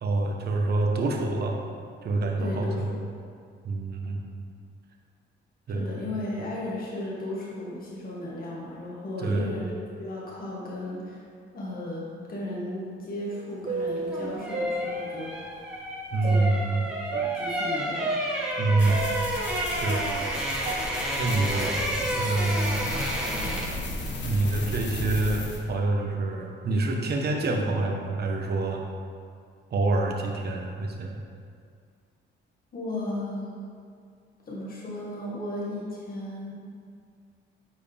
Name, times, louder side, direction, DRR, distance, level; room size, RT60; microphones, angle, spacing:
voice 1, 0.0-1.6 2.0-2.9 3.6-4.3 5.7-6.2 9.2-9.5 16.1-16.8 18.6-19.1 19.7-20.0 21.2-21.7 22.2-22.9 24.2-28.8 29.7-31.2, right 2 dB, 55° right, 1 dB, 1.1 m, -26 dB
voice 2, 2.4-2.9 5.7-11.2 11.5-12.0 12.3-15.3 16.2-16.5 17.1-18.1 32.7-33.7 34.5-36.5, left 1 dB, 45° left, -5 dB, 1.7 m, -35 dB
sound 1, 13.3-15.5 16.2-19.5 19.8-22.1 22.4-22.5 23.3-23.4 24.1-24.3 25.0-25.1 25.9-26.2, right 3 dB, 40° right, 0.7 m, -35 dB
sound 2, 13.9-23.9 24.1-24.4, right 1 dB, 5° right, 1.4 m, -31 dB
sound 3, 18.8-25.6, left 2 dB, 65° left, 1.2 m, -35 dB
9.1 x 4.8 x 3.4 m, 2.2 s
cardioid pair, 90°, 20 cm